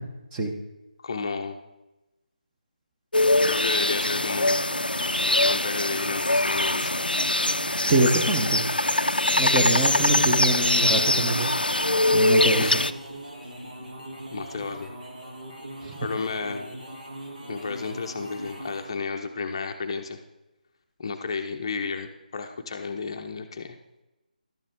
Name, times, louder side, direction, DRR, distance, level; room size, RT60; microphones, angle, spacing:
voice 1, 1.0-1.6 3.4-4.7 5.4-7.0 12.6-12.8 14.3-14.9 16.0-16.8 17.5-20.2 21.0-23.8, left 4 dB, 35° left, 5 dB, 0.6 m, -32 dB
sound 1, 3.1-12.9, left 2 dB, 90° left, 0.4 m, -23 dB
sound 2, 3.2-19.0, right 1 dB, 65° right, 2.3 m, -41 dB
voice 2, 7.9-8.6 9.4-11.5 12.1-12.7 15.8-15.9, right 1 dB, 10° right, 1 dB, 0.8 m, -24 dB
12.0 x 7.4 x 3.6 m, 1.0 s
figure-of-eight pair, 155°, 5 cm